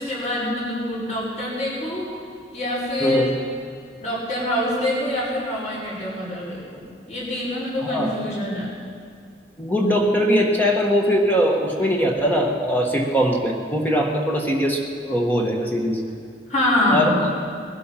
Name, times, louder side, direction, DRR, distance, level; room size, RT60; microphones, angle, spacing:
voice 1, 0.0-2.1 2.5-3.4 4.0-8.7 16.5-17.1, left 1 dB, 40° left, -8 dB, 5.5 m, -25 dB
voice 2, 3.0-3.3 7.8-8.2 9.6-16.0 16.9-17.2, equal, 10° left, 0 dB, 1.4 m, -21 dB
20.5 x 12.0 x 5.9 m, 2.2 s
head